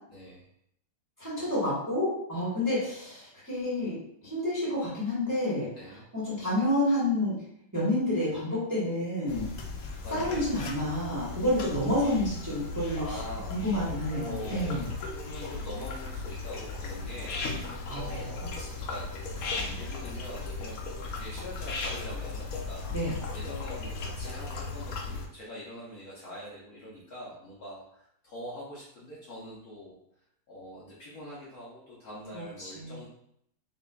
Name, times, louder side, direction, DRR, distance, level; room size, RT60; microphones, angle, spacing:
voice 1, 0.1-0.5 5.8-6.1 10.0-10.6 12.9-13.5 14.1-19.1 19.5-20.8 21.1-22.8 23.3-30.0 30.5-33.1, equal, 60° left, -7 dB, 1.1 m, -44 dB
voice 2, 1.2-4.0 4.2-5.7 6.1-7.3 7.7-9.5 10.1-13.0 13.5-14.9 17.9-18.7 19.5-19.7 22.9-23.1 32.3-32.9, left 1 dB, 10° right, -8 dB, 1.2 m, -29 dB
sound 1, 9.3-25.3, left 3 dB, 80° left, 0.8 m, -36 dB
5.4 x 2.5 x 2.3 m, 0.72 s
omnidirectional pair, 2.2 m